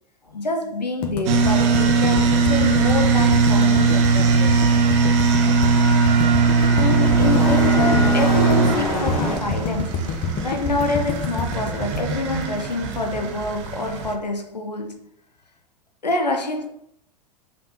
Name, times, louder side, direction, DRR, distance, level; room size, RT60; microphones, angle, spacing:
voice 1, 0.3-4.6 6.8-15.1 16.0-16.7, left 2 dB, 90° left, 0.5 m, -26 dB
sound 1, 1.0-13.2, left 4 dB, 25° left, 0.4 m, -28 dB
sound 2, 1.2-14.1, right 4 dB, 45° right, 0.5 m, -20 dB
sound 3, 6.0-9.4, left 2 dB, 45° left, 1.2 m, -27 dB
3.2 x 2.4 x 2.8 m
figure-of-eight pair, 90°, 21 cm